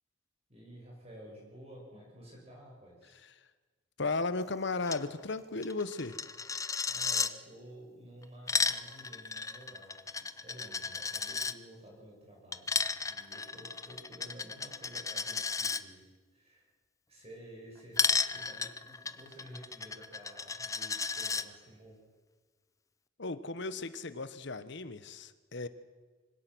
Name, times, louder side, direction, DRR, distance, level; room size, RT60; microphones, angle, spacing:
voice 1, 0.5-3.2 6.6-16.0 16.3-16.7 17.1-22.0, right 1 dB, 35° right, -2 dB, 6.2 m, -52 dB
voice 2, 4.0-6.2 23.2-25.7, left 3 dB, 65° left, 13 dB, 1.1 m, -35 dB
Coin (dropping), 4.8-5.0 5.3-5.4 5.6-7.3 8.2-11.5 12.5-15.8 18.0-21.4, left 5 dB, 15° left, 0.6 m, -33 dB
24.5 x 17.0 x 6.2 m, 1.4 s
head